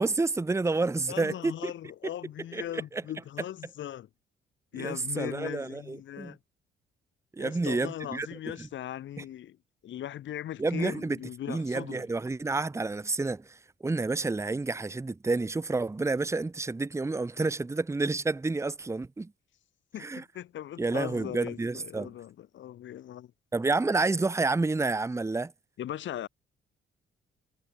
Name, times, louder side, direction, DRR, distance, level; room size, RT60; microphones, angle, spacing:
voice 1, 0.0-1.7 2.5-2.6 2.9-3.0 4.7-6.3 7.3-8.3 8.6-8.7 9.2-9.3 10.6-11.2 11.5-19.3 20.0-20.2 20.8-22.1 23.5-25.5, right 3 dB, 15° right, 0.9 m, -29 dB
voice 2, 1.1-4.1 4.7-6.4 7.4-9.6 9.8-12.1 19.9-23.3 25.8-26.3, left 11 dB, 70° left, 2.0 m, -39 dB
cardioid pair, 90°, 20 cm